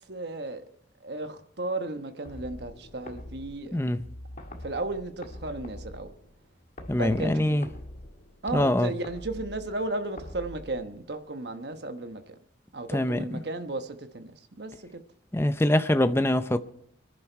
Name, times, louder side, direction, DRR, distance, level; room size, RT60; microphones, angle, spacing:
voice 1, 0.1-0.6 1.0-3.8 4.6-6.1 6.9-7.6 8.4-12.3 12.7-15.0, right 2 dB, 60° right, 1.1 m, -34 dB
sound 1, 2.3-11.3, left 1 dB, 45° left, 1.8 m, -45 dB
voice 2, 6.9-7.7 8.5-8.9 12.9-13.4 15.3-16.6, left 1 dB, 15° left, 0.5 m, -24 dB
24.5 x 10.5 x 4.5 m
head